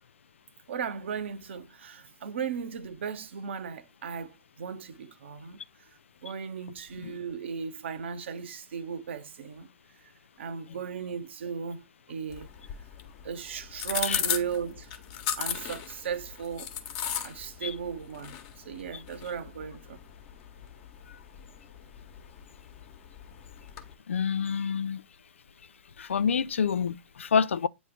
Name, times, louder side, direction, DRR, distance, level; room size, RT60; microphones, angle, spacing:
voice 1, 0.7-5.6 6.2-9.7 10.4-12.5 13.2-16.7 17.2-20.0, right 7 dB, 60° right, 1.0 m, -36 dB
sound 1, 12.3-23.9, left 9 dB, 40° left, 1.2 m, -37 dB
voice 2, 24.1-25.0 26.0-27.7, left 6 dB, 70° left, 0.4 m, -27 dB
8.6 x 3.1 x 4.8 m
figure-of-eight pair, 100°, 7 cm